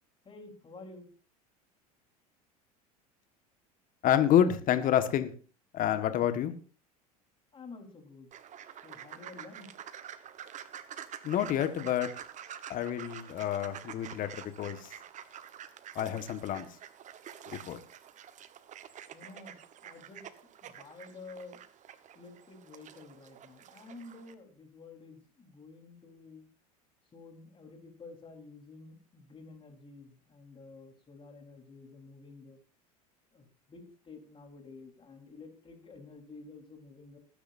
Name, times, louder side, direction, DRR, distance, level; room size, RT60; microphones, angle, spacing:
voice 1, 0.2-1.1 7.5-8.3 8.8-9.7 19.1-19.6 19.8-20.2 20.6-21.6 22.1-26.5 27.1-32.6 33.3-37.2, left 3 dB, 25° left, 3 dB, 4.2 m, -50 dB
voice 2, 4.0-5.3 5.7-6.5 11.2-12.1 12.7-14.9 15.9-16.7 17.5-17.8, left 10 dB, 45° left, 10 dB, 1.6 m, -28 dB
sound 1, 8.3-24.3, right 9 dB, 40° right, 1.2 m, -48 dB
20.5 x 10.0 x 2.7 m, 0.38 s
hypercardioid pair, 85°, 19 cm